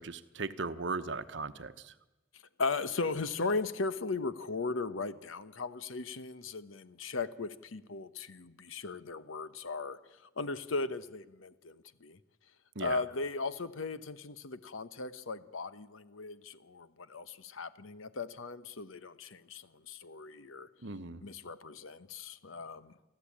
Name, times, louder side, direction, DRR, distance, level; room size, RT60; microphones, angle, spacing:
voice 1, 0.0-1.9 12.7-13.0 20.8-21.2, right 3 dB, 65° right, 1.0 m, -38 dB
voice 2, 2.3-10.0 10.4-12.2 12.8-20.7 21.2-23.1, left 3 dB, 85° left, 1.0 m, -37 dB
29.0 x 12.0 x 8.6 m
head